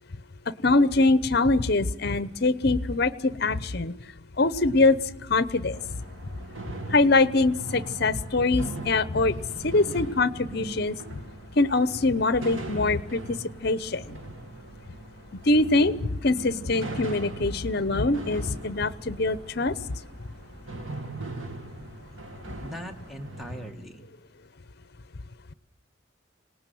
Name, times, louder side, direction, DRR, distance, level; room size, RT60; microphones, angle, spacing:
voice 1, 0.6-3.9 4.4-5.0 5.3-5.8 6.9-9.3 9.6-11.0 11.6-13.4 13.6-14.2 15.5-19.7, left 2 dB, 55° left, 16 dB, 0.9 m, -23 dB
sound 1, 5.7-23.7, right 2 dB, 85° right, 2.4 m, -40 dB
voice 2, 22.4-24.1, equal, ahead, 4 dB, 1.7 m, -41 dB
26.5 x 19.0 x 9.3 m, 0.94 s
head